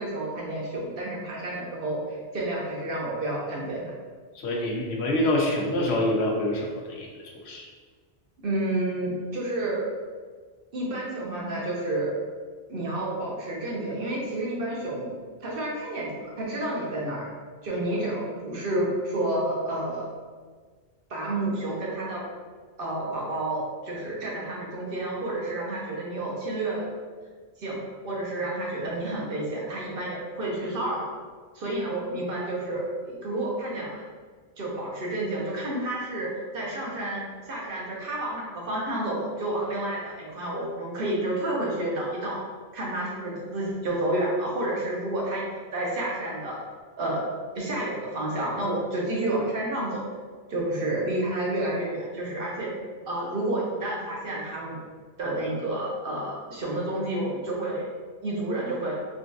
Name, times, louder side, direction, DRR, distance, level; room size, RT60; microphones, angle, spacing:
voice 1, 0.0-3.9 8.4-9.9 10.7-12.1 12.7-15.1 15.4-17.3 17.6-20.1 21.1-22.2 22.8-26.9 27.6-27.8 28.0-31.0 31.5-34.0 34.6-42.4 42.7-46.6 47.0-47.2 47.5-50.0 50.5-52.7 53.1-54.8 55.2-57.9 58.2-58.9, right 1 dB, 60° right, -3 dB, 0.9 m, -30 dB
voice 2, 4.3-7.7, left 1 dB, 90° left, -1 dB, 0.9 m, -26 dB
3.7 x 2.3 x 2.6 m, 1.5 s
omnidirectional pair, 1.1 m